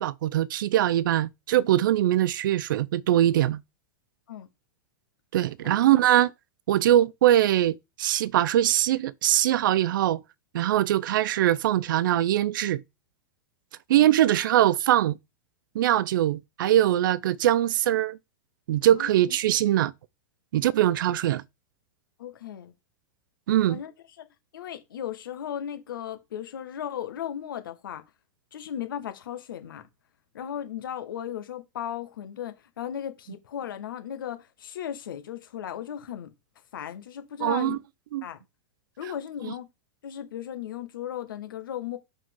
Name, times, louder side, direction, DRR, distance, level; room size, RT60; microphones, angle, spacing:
voice 1, 0.0-3.6 5.3-6.3 6.7-10.2 10.5-12.8 13.9-15.1 15.7-18.2 18.7-19.9 20.5-21.4 23.5-23.8 37.4-37.8 38.1-38.3, right 12 dB, 70° right, 0.5 m, -22 dB
voice 2, 13.9-14.3 18.9-19.2 22.2-22.7 23.7-23.9 24.2-24.3 24.5-28.0 28.5-29.8 30.3-36.3 36.7-37.8 38.2-38.4 39.0-39.7 40.0-42.0, left 10 dB, 80° left, 1.5 m, -36 dB
5.3 x 5.1 x 3.7 m
hypercardioid pair, 135°, 11 cm